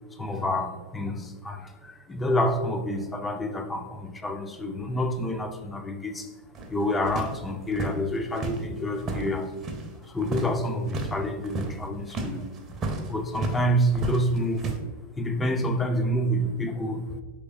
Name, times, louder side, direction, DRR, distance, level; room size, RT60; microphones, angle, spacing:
voice 1, 0.1-6.3 6.7-9.5 10.0-12.5 13.1-14.7 15.2-17.2, equal, 15° left, 6 dB, 0.4 m, -28 dB
sound 1, 6.5-9.9 10.2-10.5 10.8-11.1 11.4-13.6 13.9-14.8, right 2 dB, 30° right, 0.6 m, -33 dB
4.8 x 3.2 x 2.4 m, 1.3 s
figure-of-eight pair, 90°, 0 cm